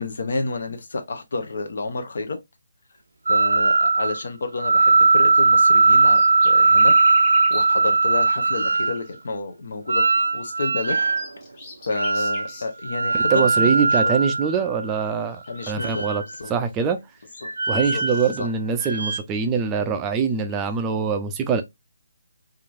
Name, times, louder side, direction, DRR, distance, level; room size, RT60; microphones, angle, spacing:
voice 1, 0.0-2.4 3.3-6.9 7.5-11.0 11.9-14.2 15.5-16.1 16.4-16.5 17.4-18.5, left 3 dB, 65° left, 0.7 m, -30 dB
sound 1, 3.3-4.2 4.6-9.0 9.9-11.3 11.9-12.5 12.8-15.1 15.7-16.5 17.4-18.4 18.8-19.2, right 3 dB, 80° right, 0.4 m, -19 dB
sound 2, 5.0-5.2 5.4-5.5 6.0-7.9 8.4-9.1 10.2-10.3 10.8-12.8 13.1-13.2 14.9-15.0 15.3-16.0 17.0-18.3 19.6-20.7, left 3 dB, 30° left, 1.1 m, -41 dB
voice 2, 13.1-15.4 15.7-16.2 16.5-17.0 17.7-21.6, right 6 dB, 15° right, 0.4 m, -23 dB
3.0 x 2.5 x 2.4 m
figure-of-eight pair, 150°, 0 cm